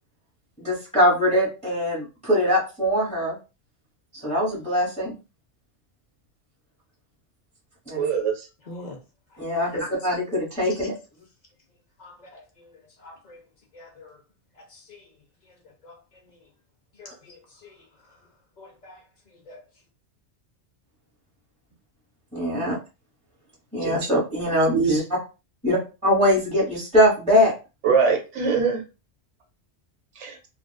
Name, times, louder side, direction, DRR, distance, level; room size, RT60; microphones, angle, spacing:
voice 1, 0.6-3.3 4.1-5.1 7.9-8.1 9.4-10.9 22.3-22.8 23.7-25.0 25.6-27.5, equal, 5° left, 1.1 m, -22 dB
voice 2, 7.9-8.5 23.8-24.0 24.7-24.9 27.8-28.8 30.2-30.4, right 5 dB, 80° right, 1.0 m, -22 dB
voice 3, 8.6-9.0 9.3-9.4 9.7-9.9 10.7-10.9 12.0-12.4 13.0-13.4 13.7-14.2 14.6-15.1 15.4-15.6 15.8-16.4 16.9-17.8 18.6-19.6, left 1 dB, 50° left, 0.6 m, -44 dB
2.4 x 2.3 x 2.2 m
omnidirectional pair, 1.2 m